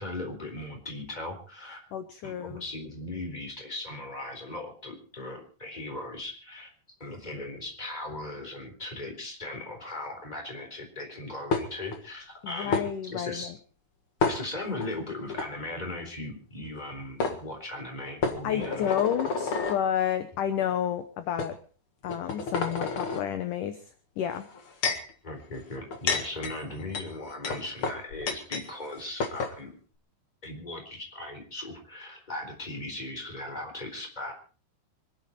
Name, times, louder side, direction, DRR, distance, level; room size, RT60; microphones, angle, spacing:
voice 1, 0.0-1.8 2.2-6.7 7.0-13.5 14.2-18.9 24.8-25.0 25.2-29.8 30.4-34.3, left 2 dB, 10° left, 4 dB, 3.4 m, -38 dB
voice 2, 1.9-2.6 12.4-13.5 18.4-21.6 22.0-23.8 24.2-24.5, left 10 dB, 70° left, 10 dB, 2.0 m, -30 dB
sound 1, 11.5-12.0 12.7-12.9 14.2-14.9 15.3-15.5 16.8-16.9 17.2-17.4 18.2-19.8 20.6-20.7 21.4-21.5 22.0-23.2 24.3-25.1 25.8-28.7 28.9-29.0 29.2-29.6, left 4 dB, 50° left, 1.6 m, -30 dB
25.5 x 11.5 x 4.3 m, 0.37 s
omnidirectional pair, 5.0 m